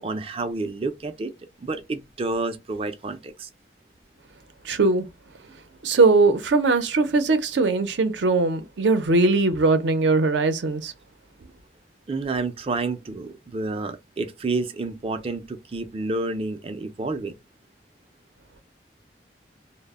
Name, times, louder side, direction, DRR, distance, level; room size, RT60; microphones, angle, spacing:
voice 1, 0.0-1.3 1.6-3.5 12.1-17.3, right 3 dB, 30° right, 0.3 m, -29 dB
voice 2, 4.6-5.0 5.8-10.9, right 3 dB, 85° right, 0.5 m, -20 dB
2.0 x 2.0 x 3.4 m
head